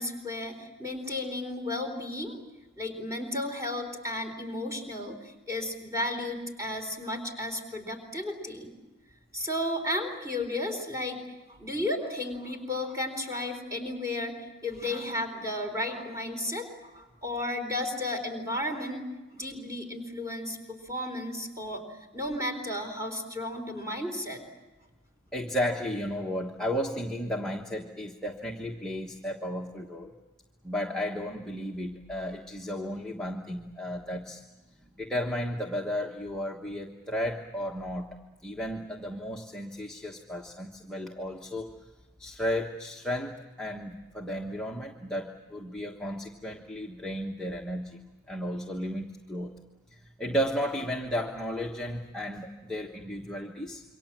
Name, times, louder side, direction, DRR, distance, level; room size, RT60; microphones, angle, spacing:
voice 1, 0.0-2.4 2.8-8.7 9.3-11.2 11.6-14.4 14.6-19.1 19.3-24.4, left 1 dB, 15° right, 3 dB, 4.0 m, -33 dB
voice 2, 25.3-30.1 30.6-34.4 35.0-38.2 38.4-41.7 42.2-48.0 48.3-49.5 49.9-53.8, equal, 5° left, -1 dB, 1.3 m, -34 dB
27.5 x 24.0 x 7.5 m, 1.2 s
head